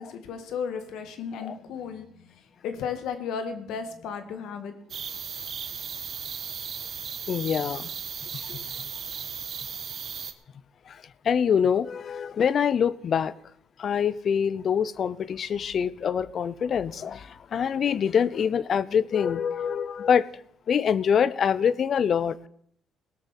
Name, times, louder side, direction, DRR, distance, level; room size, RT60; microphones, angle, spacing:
voice 1, 0.0-4.7, left 6 dB, 80° left, 1.9 m, -34 dB
sound 1, 4.9-10.3, right 7 dB, 55° right, 1.3 m, -36 dB
voice 2, 7.3-7.9 8.3-8.6 10.9-11.0 11.2-13.3 13.8-20.3 20.7-22.5, left 7 dB, 55° left, 0.7 m, -25 dB
18.0 x 6.4 x 7.2 m
cardioid pair, 85°, 0 cm